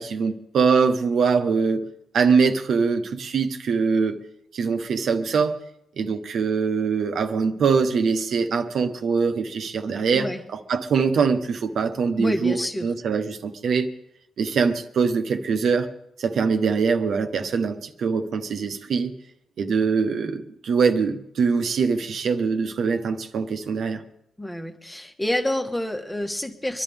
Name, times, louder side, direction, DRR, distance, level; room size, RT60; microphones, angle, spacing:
voice 1, 0.0-1.8 2.1-4.2 4.5-5.6 6.0-13.9 14.4-15.9 16.2-19.1 19.6-24.0, right 5 dB, 60° right, 1.3 m, -23 dB
voice 2, 10.1-10.4 12.2-12.9 24.4-26.8, left 1 dB, 10° left, 1.5 m, -28 dB
25.5 x 11.5 x 3.6 m
wide cardioid pair, 145°, 0 cm